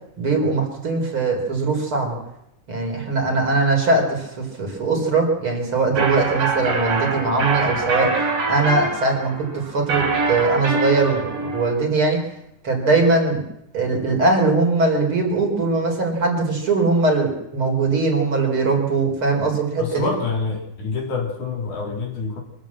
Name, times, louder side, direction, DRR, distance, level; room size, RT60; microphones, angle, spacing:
voice 1, 0.2-2.2 2.7-8.1 8.5-12.2 12.6-13.4 13.7-20.1, right 3 dB, 40° right, 2 dB, 5.1 m, -21 dB
sound 1, 6.0-11.7, right 3 dB, 85° right, 5.7 m, -24 dB
voice 2, 19.8-22.4, left 4 dB, 75° left, 0 dB, 4.7 m, -27 dB
24.5 x 14.5 x 7.5 m, 0.82 s
omnidirectional pair, 3.5 m